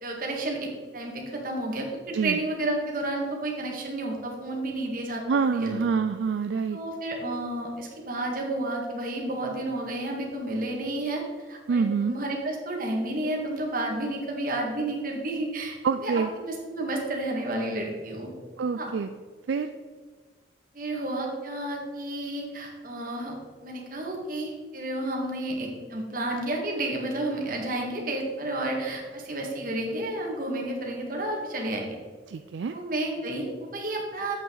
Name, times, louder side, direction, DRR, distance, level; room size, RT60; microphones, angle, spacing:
voice 1, 0.0-5.2 5.5-5.8 6.7-15.8 16.0-18.3 18.8-18.9 20.7-23.4 23.6-32.0 32.7-34.4, right 1 dB, 45° right, 0 dB, 1.9 m, -31 dB
voice 2, 5.3-6.8 11.7-12.1 15.8-16.3 18.6-19.1 19.5-19.7 32.3-32.8, right 5 dB, 70° right, 8 dB, 0.4 m, -26 dB
8.5 x 8.1 x 4.0 m, 1.5 s
head